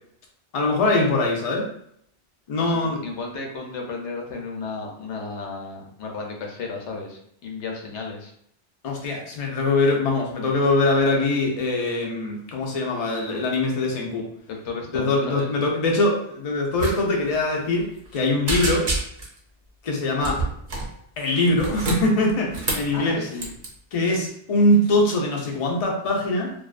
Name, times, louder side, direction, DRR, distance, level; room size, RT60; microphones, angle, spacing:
voice 1, 0.5-1.7 2.5-3.0 8.8-14.3 14.9-18.9 19.8-20.4 21.2-23.3 23.9-26.5, left 2 dB, 45° left, 0 dB, 0.5 m, -22 dB
voice 2, 2.6-8.3 14.5-15.5 22.9-23.6, left 4 dB, 80° left, 1 dB, 0.9 m, -34 dB
sound 1, 16.8-17.0 17.2-17.4 17.8-18.2 18.5-19.4 20.2-20.9 21.5-22.9 23.4-23.7, right 3 dB, 50° right, 0.6 m, -28 dB
2.5 x 2.3 x 2.4 m, 0.69 s
omnidirectional pair, 1.2 m